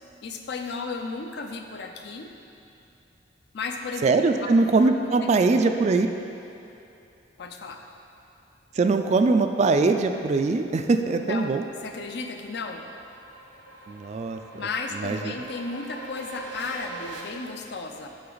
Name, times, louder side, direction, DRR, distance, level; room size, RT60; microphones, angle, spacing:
voice 1, 0.2-2.3 3.5-4.5 4.8-5.5 7.4-7.8 11.2-12.9 14.5-18.1, left 4 dB, 65° left, 4 dB, 0.6 m, -34 dB
voice 2, 4.0-6.1 8.8-11.6 13.9-14.4 15.0-15.3, right 3 dB, 35° right, 7 dB, 0.3 m, -22 dB
sound 1, 10.6-17.2, right 3 dB, 85° right, 1.2 m, -43 dB
8.6 x 5.9 x 3.9 m, 2.7 s
head